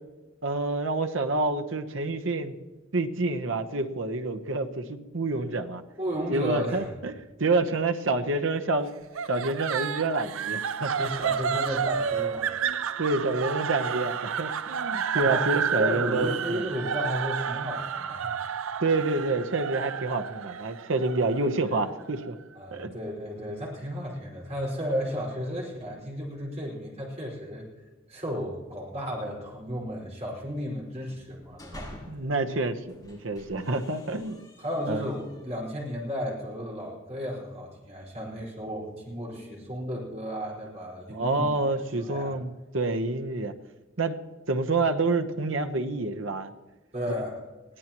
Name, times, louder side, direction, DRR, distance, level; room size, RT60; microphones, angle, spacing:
voice 1, 0.4-2.6 2.9-5.8 6.3-8.9 9.3-11.1 12.6-16.6 18.8-22.4 22.7-22.9 32.1-34.5 34.9-35.0 41.1-43.5 44.0-44.2 44.5-46.5, right 3 dB, 70° right, 7 dB, 1.0 m, -28 dB
voice 2, 6.0-6.9 11.0-12.5 15.1-18.3 22.5-27.6 28.1-31.9 34.6-41.5 41.9-42.3 46.9-47.4, equal, 35° right, -4 dB, 5.0 m, -34 dB
sound 1, 9.2-22.3, right 7 dB, 85° right, 0.5 m, -31 dB
sound 2, 31.2-32.3 32.8-35.6, left 1 dB, 20° left, 4.5 m, -48 dB
22.5 x 16.5 x 3.0 m, 1.2 s
head